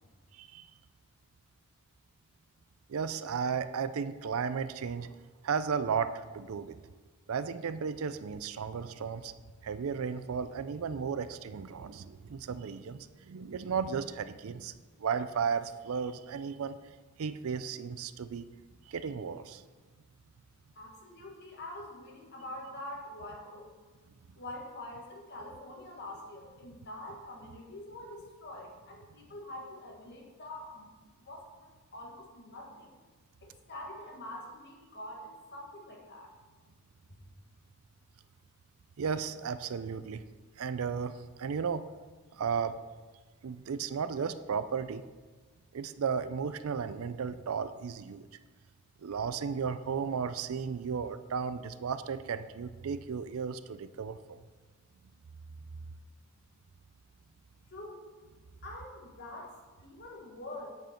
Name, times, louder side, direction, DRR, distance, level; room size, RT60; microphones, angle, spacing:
voice 1, 0.3-0.7 2.9-5.1 5.4-6.8 7.3-9.3 9.6-14.7 15.0-16.7 17.2-18.4 18.9-19.6 39.0-40.2 40.6-41.8 42.4-42.8 43.4-45.0 45.7-48.3 49.0-54.4, right 6 dB, 70° right, 13 dB, 0.4 m, -34 dB
voice 2, 20.8-23.7 24.4-30.9 31.2-32.9 33.4-36.3 37.1-37.2 57.7-58.1 58.6-60.7, left 1 dB, 50° left, -1 dB, 1.9 m, -45 dB
8.1 x 7.7 x 4.4 m, 1.4 s
head